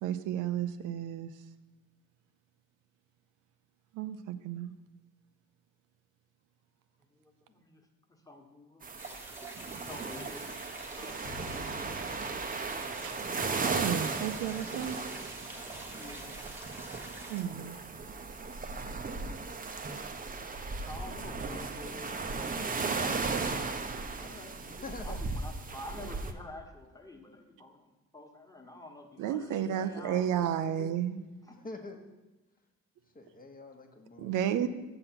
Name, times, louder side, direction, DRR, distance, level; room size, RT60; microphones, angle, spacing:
voice 1, 0.0-1.3 3.9-4.7 13.0-13.2 13.4-15.0 17.3-17.8 29.2-31.2 34.2-34.7, right 10 dB, 90° right, 11 dB, 0.5 m, -32 dB
voice 2, 7.1-8.8 9.8-11.5 16.0-16.4 20.8-30.5 31.4-31.6, left 1 dB, 10° left, 2 dB, 1.3 m, -48 dB
sound 1, 8.8-26.3, right 4 dB, 30° right, 0.6 m, -36 dB
sound 2, 9.0-17.4, right 1 dB, 5° right, 1.0 m, -47 dB
sound 3, 11.2-18.6, left 2 dB, 55° left, 1.0 m, -53 dB
voice 3, 24.7-25.2 31.6-32.1 33.1-34.6, left 3 dB, 30° left, 4 dB, 1.0 m, -45 dB
6.7 x 5.9 x 5.8 m, 1.1 s
cardioid pair, 90°, 30 cm